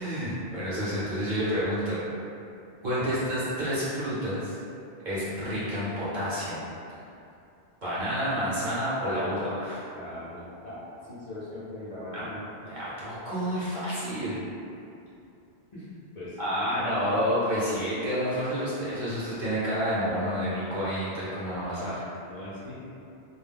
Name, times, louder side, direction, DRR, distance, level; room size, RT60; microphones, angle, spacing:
voice 1, 0.0-2.0 2.8-4.6 5.0-6.6 7.8-9.8 12.1-12.2 12.6-14.4 16.4-21.9, equal, 45° right, -11 dB, 0.8 m, -29 dB
voice 2, 3.0-3.3 9.9-12.5 15.7-15.9 16.1-17.4 21.8-22.9, left 1 dB, 45° left, -12 dB, 0.6 m, -40 dB
2.3 x 2.1 x 3.4 m, 2.6 s
omnidirectional pair, 1.2 m